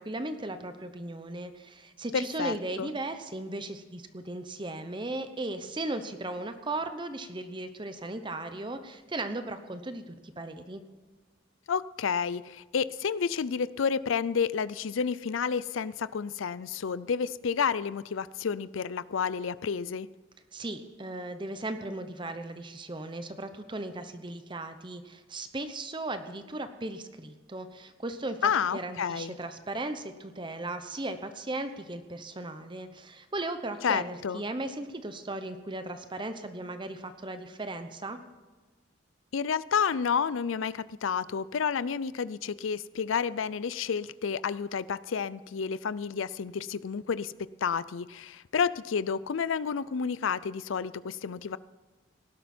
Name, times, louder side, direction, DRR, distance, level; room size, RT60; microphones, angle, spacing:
voice 1, 0.0-10.8 20.5-38.2, right 2 dB, 25° right, 9 dB, 0.9 m, -37 dB
voice 2, 2.1-2.9 11.7-20.1 28.4-29.3 33.8-34.4 39.3-47.3 47.6-51.6, left 6 dB, 85° left, 18 dB, 0.5 m, -30 dB
18.5 x 12.0 x 4.4 m, 1.3 s
head